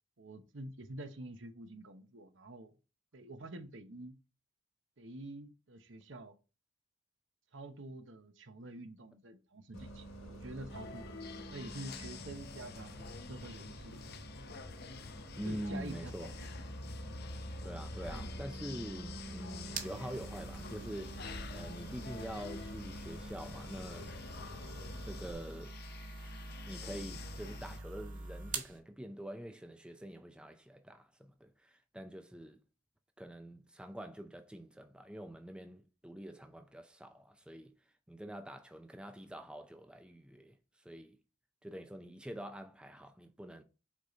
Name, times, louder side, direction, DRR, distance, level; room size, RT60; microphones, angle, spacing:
voice 1, 0.2-2.7 3.1-4.1 5.0-6.3 7.5-11.1 11.5-14.0 15.4-16.3, right 2 dB, 65° right, 1.0 m, -47 dB
Bus, 9.7-25.3, right 1 dB, 90° left, 2.5 m, -47 dB
sound 1, 10.7-27.8, left 5 dB, 50° left, 0.7 m, -49 dB
voice 2, 15.4-16.3 17.6-21.2 21.5-24.2 25.0-25.7 26.6-32.6 33.2-37.7 38.1-41.2 41.6-43.6, equal, 5° right, 0.4 m, -46 dB
sound 2, 19.2-28.8, right 3 dB, 40° right, 1.4 m, -46 dB
6.2 x 4.0 x 4.3 m
head